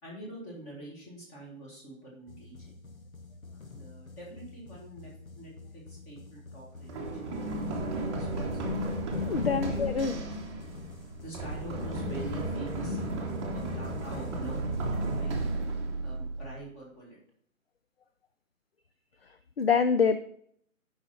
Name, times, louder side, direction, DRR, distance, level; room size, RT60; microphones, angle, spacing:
voice 1, 0.0-2.7 3.5-8.6 9.3-10.3 11.1-13.0 13.5-14.8 15.2-15.3 16.0-17.2, right 1 dB, 15° left, -3 dB, 2.1 m, -46 dB
sound 1, 2.3-16.2, left 3 dB, 75° left, 1.4 m, -48 dB
Run, 6.9-16.6, right 1 dB, 20° right, 1.0 m, -33 dB
voice 2, 9.3-10.1 19.6-20.2, left 6 dB, 45° left, 10 dB, 0.5 m, -25 dB
9.7 x 5.6 x 4.3 m, 0.65 s
figure-of-eight pair, 140°, 42 cm